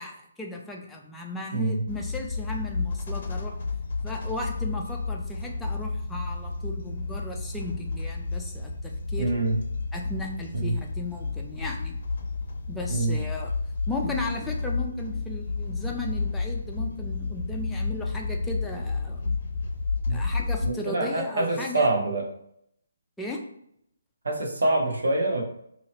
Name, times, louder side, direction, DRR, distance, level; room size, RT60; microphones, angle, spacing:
voice 1, 0.0-3.5 4.0-9.3 9.9-12.0 12.7-13.5 13.9-19.3 20.1-21.9 23.2-23.4, left 2 dB, 5° left, -1 dB, 0.4 m, -36 dB
sound 1, 1.9-20.7, left 3 dB, 45° left, 0.6 m, -31 dB
voice 2, 9.2-9.6 10.6-10.8 12.9-13.2 20.1-20.2 20.6-22.2 24.2-25.4, right 2 dB, 80° right, 1 dB, 1.2 m, -25 dB
2.9 x 2.8 x 4.1 m, 0.73 s
hypercardioid pair, 165°, 0 cm